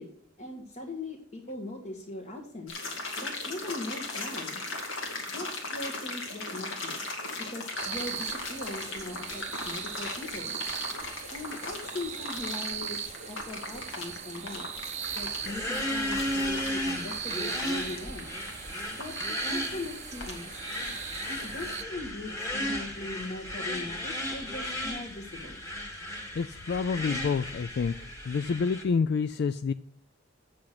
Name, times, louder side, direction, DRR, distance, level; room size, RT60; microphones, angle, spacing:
voice 1, 0.0-2.7 3.2-4.6 5.3-7.0 7.4-10.6 11.3-14.6 15.2-18.3 19.0-19.2 19.5-20.6 21.3-25.6, left 2 dB, 40° left, -1 dB, 1.6 m, -40 dB
sound 1, 2.7-21.2 21.4-21.5, left 2 dB, 85° left, 2.2 m, -38 dB
sound 2, 7.7-21.8, right 8 dB, 35° right, 0.6 m, -39 dB
sound 3, 15.0-28.8, left 1 dB, 15° left, 1.7 m, -35 dB
voice 2, 26.3-27.9 28.2-29.7, left 5 dB, 55° left, 13 dB, 0.3 m, -28 dB
8.4 x 6.4 x 5.9 m, 0.63 s
head